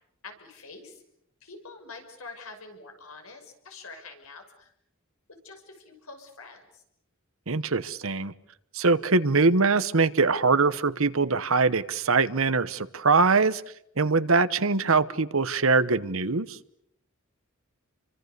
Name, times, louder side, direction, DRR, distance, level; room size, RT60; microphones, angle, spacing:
voice 1, 0.2-1.0 1.4-4.7 5.4-6.8, left 3 dB, 80° left, 5 dB, 6.1 m, -46 dB
voice 2, 7.5-8.3 8.7-13.6 14.0-16.6, right 4 dB, 65° right, 13 dB, 1.1 m, -23 dB
30.0 x 24.5 x 6.8 m, 0.75 s
head